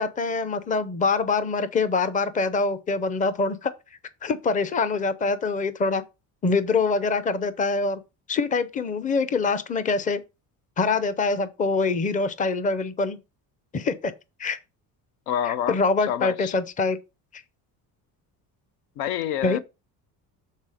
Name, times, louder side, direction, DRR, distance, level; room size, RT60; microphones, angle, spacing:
voice 1, 0.0-3.7 4.2-6.0 6.4-8.0 8.3-10.2 10.8-13.2 13.7-14.1 14.4-14.6 15.5-17.0 17.3-17.4 19.4-19.6, left 4 dB, 20° left, 0.6 m, -24 dB
voice 2, 15.3-15.8 16.1-16.6 19.0-19.6, left 10 dB, 80° left, 0.7 m, -27 dB
7.3 x 4.1 x 4.9 m
cardioid pair, 145°, 37 cm